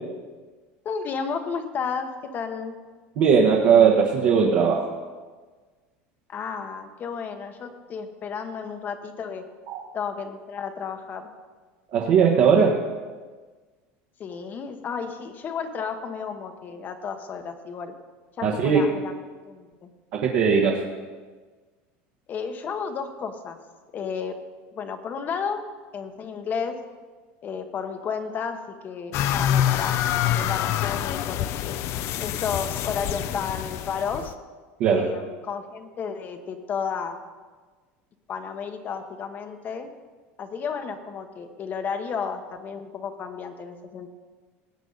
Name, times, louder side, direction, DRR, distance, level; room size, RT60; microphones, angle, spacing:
voice 1, 0.8-2.8 6.3-9.4 9.9-11.3 14.2-17.9 18.4-19.1 19.4-19.9 22.3-23.6 23.9-24.4 24.7-25.6 25.9-26.8 27.4-30.0 30.2-31.8 32.2-34.3 34.9-37.2 38.3-39.9 40.4-44.1, left 6 dB, 35° left, 7 dB, 1.1 m, -32 dB
voice 2, 3.2-4.9 9.7-9.8 11.9-12.8 18.4-18.9 20.2-20.8 34.8-35.1, right 6 dB, 55° right, -1 dB, 1.5 m, -19 dB
sound 1, 29.1-34.3, left 11 dB, 55° left, 0.6 m, -26 dB
18.5 x 8.3 x 4.0 m, 1.4 s
supercardioid pair, 135°, 6 cm